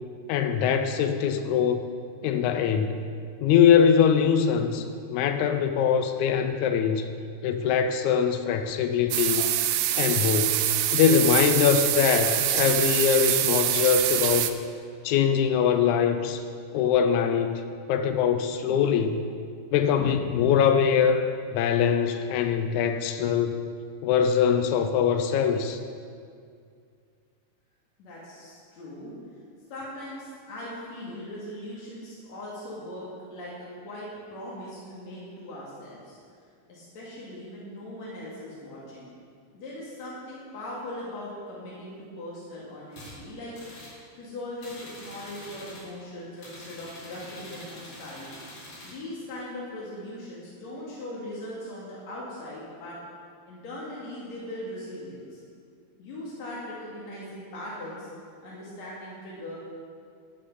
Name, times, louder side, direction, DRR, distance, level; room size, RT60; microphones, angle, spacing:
voice 1, 0.3-1.8 2.2-3.0 3.4-7.1 7.4-9.4 10.0-10.6 10.9-14.5 15.0-16.4 16.7-17.6 17.9-19.2 19.7-21.2 21.5-23.5 24.0-25.8, left 7 dB, 85° left, 7 dB, 2.1 m, -22 dB
sound 1, 9.1-14.5, right 12 dB, 80° right, 1.5 m, -25 dB
voice 2, 28.0-29.1 29.7-36.2 36.7-39.1 39.5-43.6 44.2-48.3 48.8-53.0 53.5-55.4 56.0-58.1 58.4-59.6, left 1 dB, 70° left, -7 dB, 3.4 m, -39 dB
sound 2, 42.9-43.2 43.5-44.0 44.6-45.9 46.4-49.0, left 1 dB, 55° left, 3.5 m, -45 dB
13.5 x 8.8 x 5.5 m, 2.2 s
omnidirectional pair, 3.3 m